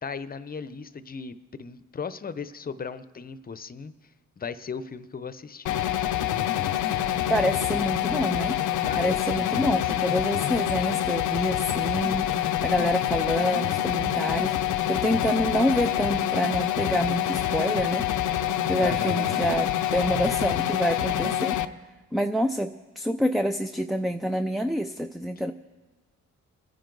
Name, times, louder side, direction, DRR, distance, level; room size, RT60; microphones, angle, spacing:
voice 1, 0.0-4.1 4.4-5.9 8.8-9.9 18.8-19.4, left 5 dB, 30° left, 13 dB, 0.8 m, -37 dB
sound 1, 5.7-21.7, left 11 dB, 80° left, 0.7 m, -26 dB
voice 2, 7.3-8.6 9.0-18.0 18.3-21.6 22.1-25.5, equal, ahead, 8 dB, 0.4 m, -27 dB
27.5 x 10.5 x 3.9 m, 1.3 s
cardioid pair, 90°, 30 cm